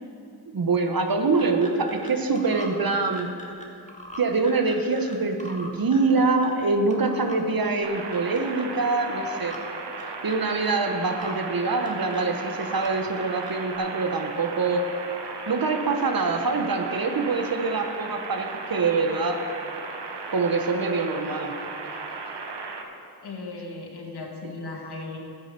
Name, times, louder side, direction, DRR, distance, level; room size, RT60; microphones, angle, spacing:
voice 1, 0.5-3.3 4.2-9.6 10.2-14.8 15.5-19.4 20.3-21.5, right 3 dB, 55° right, 5 dB, 1.3 m, -24 dB
sound 1, 1.1-2.1 2.4-5.2 5.4-6.7 6.9-7.4 7.8-8.6 9.0-9.6 10.0-10.7 11.1-11.3 11.6-12.9 13.2-13.8, left 1 dB, 15° left, 2.1 m, -42 dB
sound 2, 7.8-22.8, right 4 dB, 80° right, 1.2 m, -36 dB
voice 2, 23.2-25.2, left 3 dB, 70° left, 0 dB, 2.1 m, -36 dB
12.5 x 8.7 x 5.3 m, 2.6 s
cardioid pair, 45°, 41 cm